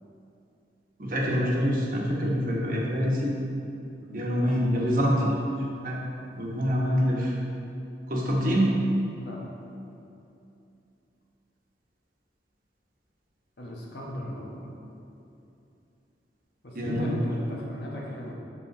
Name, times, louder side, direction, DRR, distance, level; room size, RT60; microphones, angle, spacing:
voice 1, 1.0-3.3 4.1-5.3 5.8-6.0 6.4-7.3 8.1-8.7 14.1-14.2 16.7-17.2, equal, 50° right, -3 dB, 1.1 m, -25 dB
voice 2, 4.0-4.5 5.0-5.2 9.2-9.4 13.6-14.7 16.6-18.3, equal, 75° left, -3 dB, 1.2 m, -38 dB
5.4 x 4.2 x 5.9 m, 2.8 s
head